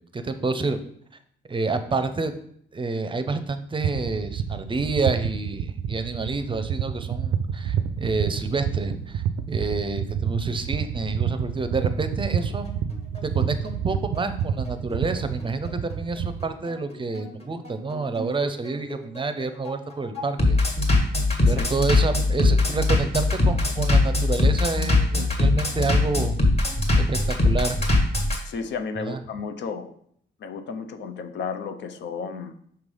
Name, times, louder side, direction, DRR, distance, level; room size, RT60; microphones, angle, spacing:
voice 1, 0.1-0.8 1.5-2.3 2.7-12.7 13.3-20.6 21.5-26.4 27.0-27.8 29.1-29.2, right 3 dB, 25° right, 9 dB, 0.6 m, -28 dB
sound 1, 3.8-16.5, right 8 dB, 70° right, 0.5 m, -28 dB
Bass drum, 12.4-28.4, left 2 dB, 30° left, 1.6 m, -22 dB
voice 2, 21.5-21.8 28.4-29.9 30.4-32.6, left 5 dB, 65° left, 8 dB, 0.7 m, -33 dB
5.8 x 3.3 x 5.4 m, 0.66 s
cardioid pair, 90°, 20 cm